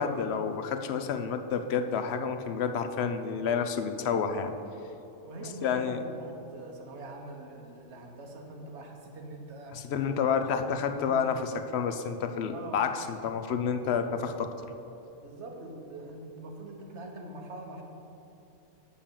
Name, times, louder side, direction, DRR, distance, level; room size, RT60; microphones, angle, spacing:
voice 1, 0.0-4.5 5.6-6.0 9.7-11.4 11.7-14.5, left 6 dB, 65° left, 7 dB, 0.8 m, -29 dB
voice 2, 5.2-9.8 10.2-11.3 12.5-12.9 15.2-17.8, right 2 dB, 70° right, 1 dB, 1.3 m, -43 dB
7.0 x 5.3 x 7.2 m, 2.9 s
omnidirectional pair, 1.2 m